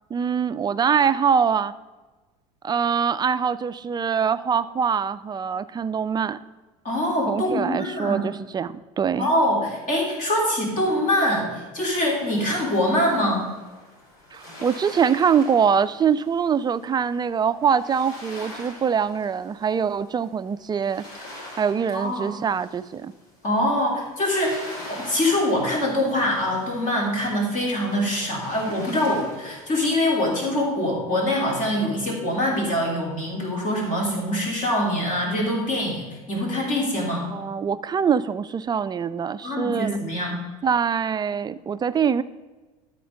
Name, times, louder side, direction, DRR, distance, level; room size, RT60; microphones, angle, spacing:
voice 1, 0.1-1.7 2.6-6.4 7.3-9.3 14.3-21.0 21.6-23.1 37.3-39.9 40.6-42.2, right 7 dB, 20° right, 14 dB, 0.4 m, -23 dB
voice 2, 6.8-8.3 9.2-13.5 21.9-22.3 23.4-37.3 39.4-40.3, left 1 dB, 45° left, -1 dB, 3.3 m, -24 dB
sound 1, 11.8-30.3, left 1 dB, 70° left, 2.9 m, -44 dB
12.0 x 4.4 x 5.1 m, 1.2 s
hypercardioid pair, 85°, 19 cm